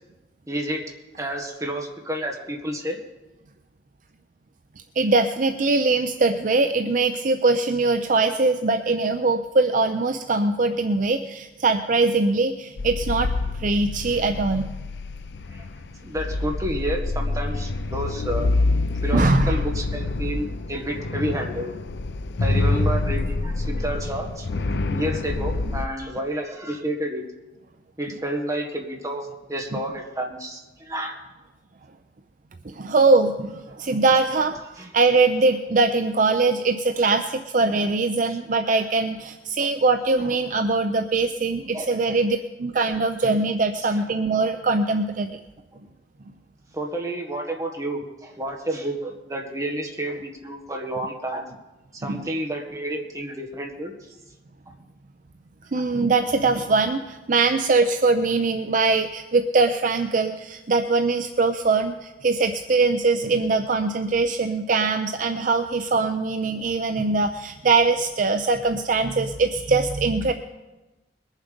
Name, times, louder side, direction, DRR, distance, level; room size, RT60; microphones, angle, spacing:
voice 1, 0.5-0.9 1.2-3.0 15.5-15.7 16.0-18.5 19.0-21.7 22.4-24.5 24.9-27.3 28.0-31.2 34.8-34.9 38.3-38.4 38.7-38.9 39.6-39.7 41.7-42.2 43.8-44.0 46.7-51.5 51.9-54.1 55.7-55.9, right 1 dB, 20° right, 2 dB, 1.6 m, -30 dB
voice 2, 5.0-13.3 13.6-14.7 19.1-19.6 29.7-29.8 32.6-34.6 34.9-45.4 52.0-52.2 55.7-70.3, right 3 dB, 50° right, 7 dB, 0.5 m, -22 dB
sound 1, 12.8-25.9, left 2 dB, 75° left, 0.6 m, -26 dB
21.5 x 7.3 x 5.2 m, 1.1 s
head